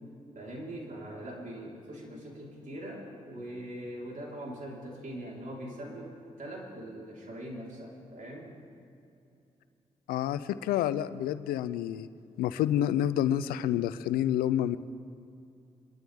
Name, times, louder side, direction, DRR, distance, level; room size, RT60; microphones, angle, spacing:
voice 1, 0.3-8.5, right 1 dB, 60° right, -3 dB, 4.2 m, -42 dB
voice 2, 10.1-12.1 12.4-14.8, left 11 dB, 90° left, 15 dB, 0.4 m, -28 dB
24.5 x 12.5 x 3.6 m, 2.6 s
supercardioid pair, 40°, 15 cm